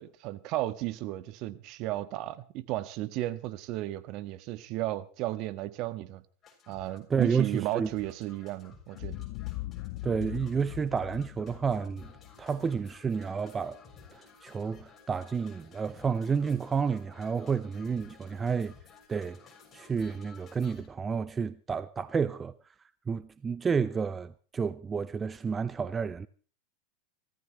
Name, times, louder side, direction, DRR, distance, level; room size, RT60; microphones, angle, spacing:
voice 1, 0.0-6.2 6.7-9.2, right 15 dB, 50° right, 1.5 m, -34 dB
sound 1, 6.4-20.9, left 6 dB, 30° left, 6.7 m, -55 dB
voice 2, 7.1-7.9 10.0-12.1 12.4-13.8 14.1-18.7 19.1-19.4 19.7-22.5 23.1-26.3, right 6 dB, 20° right, 0.6 m, -30 dB
Boom, 8.9-13.2, left 19 dB, 60° left, 0.8 m, -41 dB
26.0 x 14.0 x 3.1 m
hypercardioid pair, 110°, 0 cm